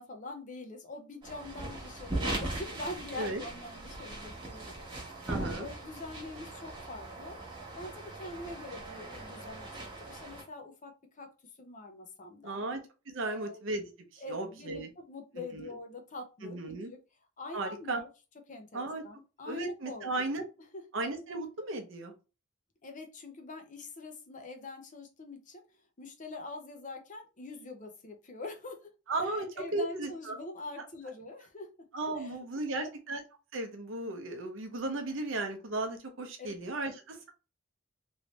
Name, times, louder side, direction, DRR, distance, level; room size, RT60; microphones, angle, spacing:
voice 1, 0.0-4.8 5.0-7.4 7.8-9.7 10.0-11.3 11.6-12.6 13.2-13.6 14.2-16.6 16.9-17.0 17.4-18.1 18.5-20.3 20.7-20.9 22.8-25.6 26.0-28.9 29.2-31.7 32.2-32.9 36.4-36.9, left 2 dB, 40° left, 4 dB, 0.7 m, -44 dB
sound 1, 1.2-10.4, right 2 dB, 20° right, 1.1 m, -40 dB
voice 2, 5.3-5.7 12.4-12.8 13.1-13.8 14.1-14.9 15.5-15.7 16.4-16.9 17.5-18.0 18.7-19.0 19.5-20.4 20.9-22.1 29.1-29.5 29.7-30.4 31.9-33.2 33.5-37.3, right 2 dB, 65° right, 5 dB, 0.7 m, -35 dB
3.2 x 2.7 x 3.0 m, 0.31 s
head